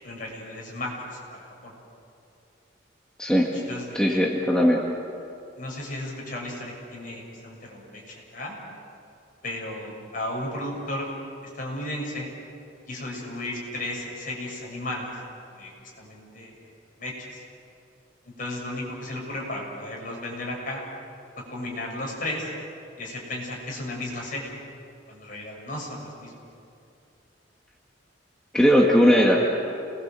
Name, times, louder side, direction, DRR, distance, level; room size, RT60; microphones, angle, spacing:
voice 1, 0.0-1.7 3.4-4.2 5.6-8.6 9.4-11.1 11.4-12.3 12.9-15.1 15.5-16.6 17.0-17.4 18.4-20.8 21.5-22.5 23.0-24.5 25.1-26.3, left 1 dB, 45° left, -2 dB, 7.0 m, -34 dB
voice 2, 3.9-4.8 28.5-29.4, equal, 5° left, -2 dB, 1.9 m, -18 dB
29.0 x 21.0 x 7.7 m, 2.6 s
head